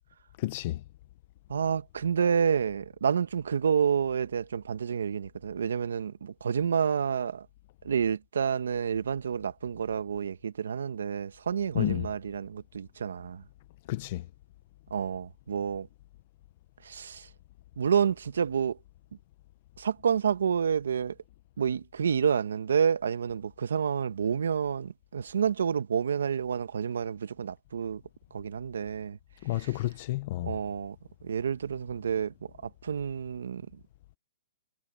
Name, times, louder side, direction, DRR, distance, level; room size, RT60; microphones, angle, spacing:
voice 1, 0.4-0.8 11.7-12.1 13.9-14.2 29.4-30.5, left 16 dB, 30° left, 0.5 m, -30 dB
voice 2, 1.5-7.5 7.8-13.4 14.9-15.9 16.8-17.3 17.8-18.8 19.8-21.1 21.6-28.0 28.3-29.2 29.6-29.7 30.4-30.9 31.2-32.3 32.6-33.6, right 7 dB, 80° right, 1.0 m, -29 dB
hypercardioid pair, 175°, 0 cm